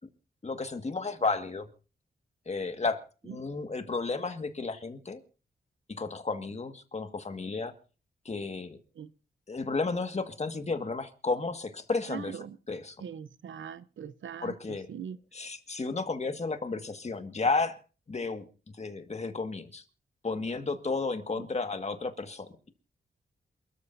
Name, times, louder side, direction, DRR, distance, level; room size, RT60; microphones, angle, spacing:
voice 1, 0.4-1.7 2.5-5.2 5.9-7.7 8.3-8.8 9.5-12.4 12.7-13.0 14.4-14.9 15.3-17.8 18.1-18.5 18.8-19.8 20.2-22.7, left 3 dB, 35° left, 1.8 m, -32 dB
voice 2, 12.1-12.6 13.0-15.2 21.4-21.5, right 8 dB, 85° right, 0.7 m, -41 dB
28.0 x 13.5 x 2.7 m
wide cardioid pair, 90°, 19 cm